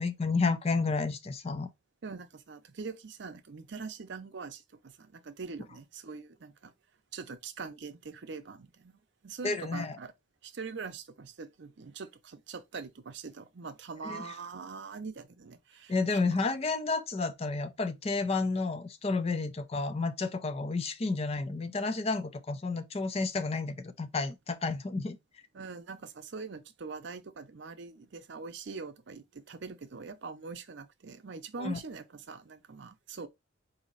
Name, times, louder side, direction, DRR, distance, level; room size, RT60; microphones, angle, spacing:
voice 1, 0.0-1.7 9.4-10.0 14.0-14.2 15.9-25.2 31.6-31.8, left 3 dB, 30° left, 0.4 m, -31 dB
voice 2, 2.0-6.7 7.1-10.1 10.4-16.4 25.5-33.3, right 4 dB, 55° right, 0.5 m, -43 dB
4.1 x 2.7 x 3.8 m
head